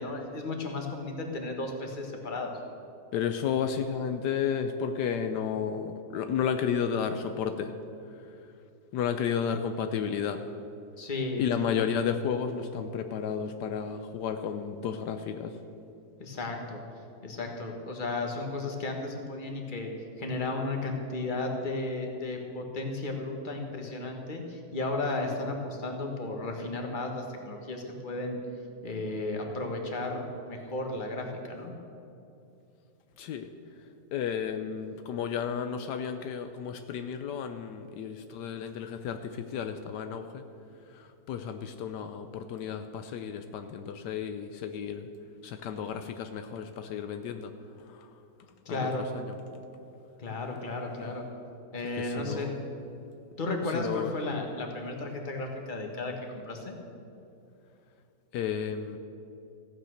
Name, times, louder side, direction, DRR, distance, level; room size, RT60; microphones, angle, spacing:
voice 1, 0.0-2.5 11.0-11.7 16.2-16.8 17.2-28.4 28.8-31.7 48.6-49.1 50.2-51.2 51.7-52.5 53.4-56.8, left 2 dB, 30° left, 2 dB, 1.6 m, -34 dB
voice 2, 3.1-7.7 8.9-10.4 11.4-15.5 33.2-33.5 34.1-40.4 40.9-45.1 45.4-47.5 47.9-48.1 48.7-49.2 52.0-52.5 53.7-54.1 58.3-59.0, left 7 dB, 80° left, 8 dB, 1.3 m, -32 dB
15.0 x 9.1 x 6.4 m, 2.7 s
omnidirectional pair, 1.8 m